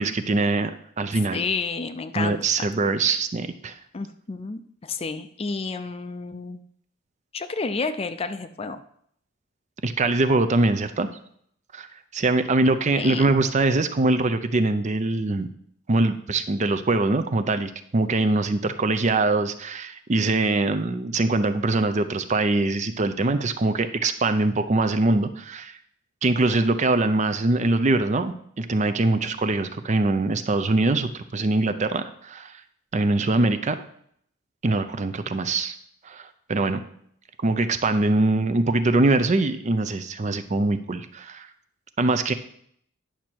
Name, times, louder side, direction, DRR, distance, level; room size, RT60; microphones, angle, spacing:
voice 1, 0.0-1.4 2.2-3.7 9.8-11.1 11.7-11.9 12.1-15.5 15.9-25.8 26.2-32.6 32.9-33.8 34.6-35.8 36.0-36.8 37.4-41.5 42.0-42.3, right 2 dB, 35° right, 10 dB, 0.5 m, -23 dB
voice 2, 1.3-2.4 3.9-6.6 7.3-8.8 13.0-13.3, left 4 dB, 25° left, 10 dB, 0.4 m, -30 dB
10.0 x 6.2 x 4.5 m, 0.67 s
head